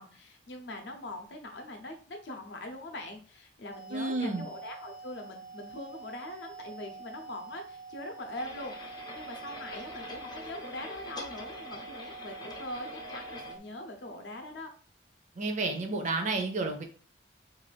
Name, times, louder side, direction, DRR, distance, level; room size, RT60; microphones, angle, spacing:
voice 1, 0.0-14.7, left 1 dB, 70° left, 4 dB, 0.6 m, -42 dB
sound 1, 3.7-13.6, right 4 dB, 80° right, 1.0 m, -46 dB
voice 2, 3.9-4.5 15.4-16.8, right 3 dB, 40° right, 4 dB, 0.5 m, -31 dB
Tea kettle htng to whistle elec range, 8.3-13.5, left 2 dB, 25° left, 0.4 m, -45 dB
2.5 x 2.3 x 3.3 m, 0.42 s
head